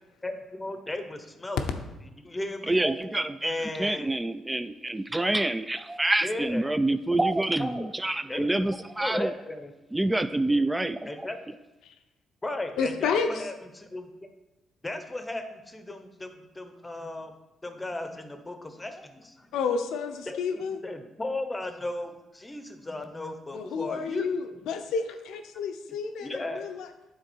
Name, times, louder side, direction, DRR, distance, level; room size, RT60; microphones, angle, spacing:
voice 1, 0.2-1.7 2.2-2.8 3.4-4.1 6.2-6.6 7.6-7.9 8.3-8.5 9.0-9.7 11.1-11.4 12.4-14.1 14.8-17.3 17.6-19.5 20.3-24.6 26.2-26.6, left 2 dB, 15° left, 7 dB, 0.8 m, -36 dB
voice 2, 2.6-9.3 9.9-11.3, right 2 dB, 10° right, 12 dB, 0.3 m, -27 dB
voice 3, 12.8-13.3 19.5-20.8 23.5-26.9, left 5 dB, 85° left, 7 dB, 0.7 m, -30 dB
9.4 x 3.8 x 4.5 m, 1.0 s
cardioid pair, 90°, 0 cm